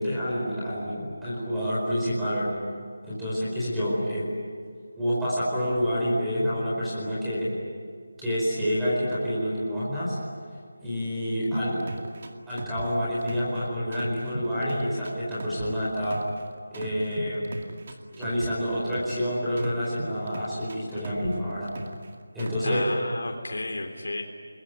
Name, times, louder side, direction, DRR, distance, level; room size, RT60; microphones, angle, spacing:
voice 1, 0.0-2.5 3.0-4.3 4.9-7.5 8.2-10.2 10.8-11.8 12.5-16.2 16.7-17.5 18.1-21.7 22.3-22.8, equal, 5° right, -10 dB, 4.7 m, -28 dB
sound 1, 11.5-13.6 13.9-16.4 16.7-19.2 19.6-22.1 22.4-22.8, right 2 dB, 35° right, 2.1 m, -37 dB
voice 2, 22.6-24.2, left 2 dB, 85° left, 2 dB, 3.6 m, -33 dB
29.0 x 21.5 x 9.5 m, 2.1 s
figure-of-eight pair, 180°, 0 cm